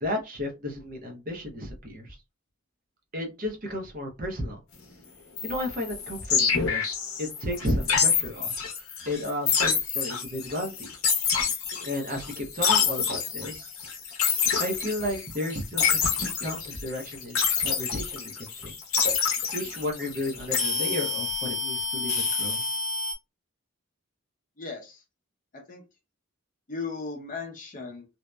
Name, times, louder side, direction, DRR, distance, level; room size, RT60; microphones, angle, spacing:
voice 1, 0.0-2.2 3.1-4.6 5.4-6.9 7.2-8.5 9.1-10.9 11.9-13.7 14.6-18.7 19.5-22.6, left 1 dB, 40° right, 3 dB, 0.6 m, -33 dB
sound 1, 5.4-23.1, left 5 dB, 85° left, 0.6 m, -27 dB
voice 2, 24.6-25.0 25.5-25.8 26.7-28.1, left 4 dB, 40° left, 2 dB, 0.6 m, -37 dB
2.7 x 2.0 x 2.2 m, 0.25 s
head